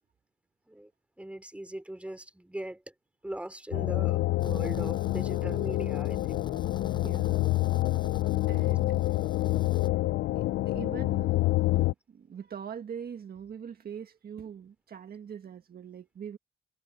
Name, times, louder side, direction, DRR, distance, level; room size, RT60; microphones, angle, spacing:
voice 1, 1.2-2.9 3.2-6.5 9.4-9.6, right 1 dB, 5° right, 3.7 m, -40 dB
sound 1, 3.7-11.9, left 17 dB, 80° left, 0.5 m, -27 dB
sound 2, 4.4-9.9, left 3 dB, 25° left, 6.7 m, -45 dB
voice 2, 7.0-7.5 8.4-9.0 10.4-11.4 11.7-16.4, right 7 dB, 50° right, 1.7 m, -42 dB
cardioid pair, 90°, 20 cm